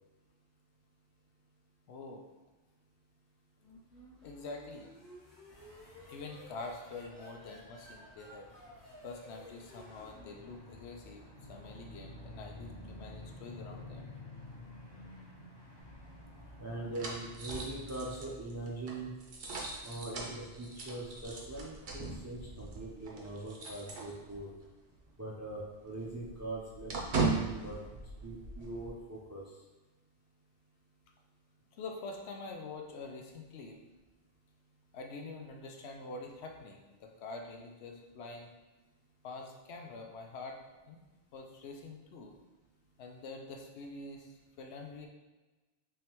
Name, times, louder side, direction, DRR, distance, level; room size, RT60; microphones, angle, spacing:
voice 1, 1.9-2.3 4.2-4.9 5.7-5.8 6.1-8.5 9.0-14.0 31.8-33.8 34.9-38.5 39.2-40.6 40.9-41.0 41.3-42.4 43.0-45.1, left 3 dB, 75° left, 2 dB, 0.9 m, -46 dB
sound 1, 3.6-11.2, left 1 dB, 45° left, 1.3 m, -55 dB
sound 2, 5.5-18.3, left 1 dB, 25° left, 0.8 m, -52 dB
sound 3, 15.8-24.7 25.0-25.1 25.4-28.9, right 3 dB, 60° right, 0.9 m, -39 dB
voice 2, 16.6-19.1 19.8-24.5 25.2-26.9 27.3-29.4, right 2 dB, 25° right, -5 dB, 0.4 m, -42 dB
3.6 x 3.2 x 3.0 m, 1.2 s
omnidirectional pair, 1.1 m